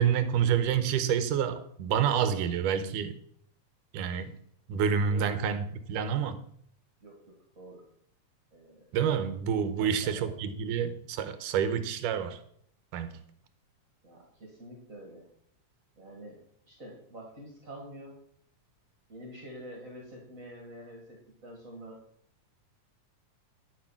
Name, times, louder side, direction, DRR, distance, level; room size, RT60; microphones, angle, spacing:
voice 1, 0.0-3.2 3.9-4.4 4.7-6.4 8.9-12.4 12.9-13.2, right 8 dB, 80° right, 2.4 m, -28 dB
voice 2, 7.0-7.8 8.5-8.8 9.8-10.3 14.0-15.3 16.0-16.4 16.7-18.2 19.1-22.0, right 1 dB, 25° right, 2.4 m, -47 dB
12.0 x 6.5 x 5.9 m
omnidirectional pair, 3.7 m